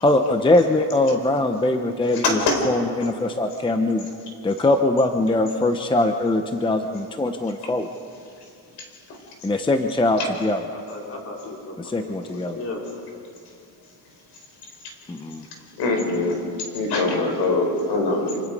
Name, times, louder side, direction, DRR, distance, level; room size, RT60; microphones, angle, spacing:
voice 1, 0.0-4.1 4.4-7.9 9.4-10.6 11.8-12.6 15.1-15.5, left 2 dB, 10° left, 6 dB, 0.8 m, -22 dB
voice 2, 2.2-2.6 7.6-7.7 10.2-10.3 15.8-16.4 16.7-18.5, left 2 dB, 75° left, 3 dB, 4.9 m, -22 dB
voice 3, 10.7-12.8, left 2 dB, 35° left, -1 dB, 4.4 m, -36 dB
26.0 x 26.0 x 5.3 m, 2.5 s
cardioid pair, 150°, 40 cm